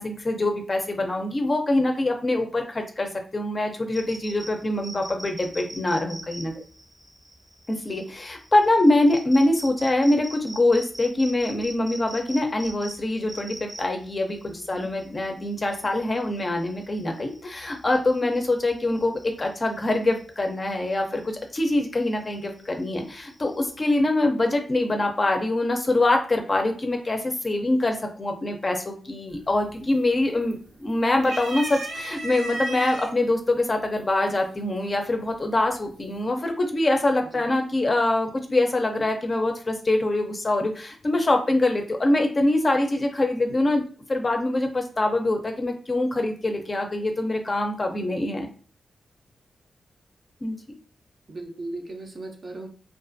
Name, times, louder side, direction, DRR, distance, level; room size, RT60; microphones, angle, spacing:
voice 1, 0.0-6.6 7.7-14.4 14.7-43.8 44.1-48.5 50.4-50.6, left 2 dB, 30° left, 4 dB, 0.5 m, -24 dB
sound 1, 3.9-23.8, right 1 dB, 5° right, 0.7 m, -44 dB
voice 2, 14.5-14.9 37.2-37.5 51.3-52.7, right 2 dB, 40° right, 3 dB, 0.5 m, -37 dB
sound 2, 29.3-29.7 30.1-30.8 31.2-33.1 34.0-34.1 35.3-35.8, right 1 dB, 85° right, 0.6 m, -33 dB
2.4 x 2.3 x 2.5 m, 0.42 s
wide cardioid pair, 105°, 0 cm